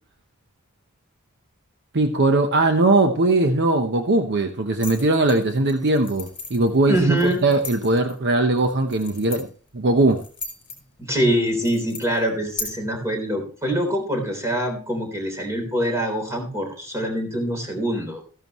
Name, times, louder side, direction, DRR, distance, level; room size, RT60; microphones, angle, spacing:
voice 1, 1.9-9.5 9.7-10.2, right 2 dB, 55° right, 6 dB, 0.9 m, -20 dB
sound 1, 4.8-12.6, left 4 dB, 25° left, 4.6 m, -38 dB
voice 2, 6.9-7.4 11.0-18.2, equal, 15° right, 3 dB, 3.7 m, -24 dB
14.5 x 11.0 x 3.1 m, 0.40 s
head